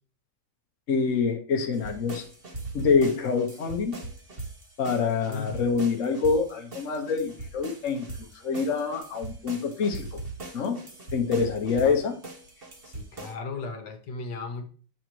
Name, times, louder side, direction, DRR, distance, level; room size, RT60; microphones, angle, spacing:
voice 1, 0.9-2.2 2.7-3.9 4.8-10.2 10.5-10.8 11.1-12.2, left 5 dB, 50° left, 2 dB, 1.1 m, -26 dB
sound 1, 1.7-13.3, right 2 dB, 35° right, 1.3 m, -41 dB
voice 2, 12.8-14.7, left 4 dB, 65° left, 5 dB, 1.7 m, -36 dB
7.9 x 6.1 x 3.0 m, 0.40 s
omnidirectional pair, 2.1 m